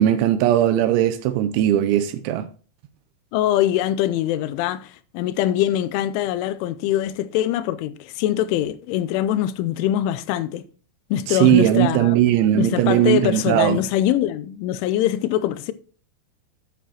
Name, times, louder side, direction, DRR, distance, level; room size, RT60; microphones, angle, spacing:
voice 1, 0.0-2.5 11.3-13.8, right 12 dB, 80° right, 2.8 m, -18 dB
voice 2, 3.3-10.6 11.1-12.2 12.5-15.7, left 12 dB, 85° left, 3.0 m, -23 dB
9.2 x 9.1 x 2.9 m
omnidirectional pair, 5.7 m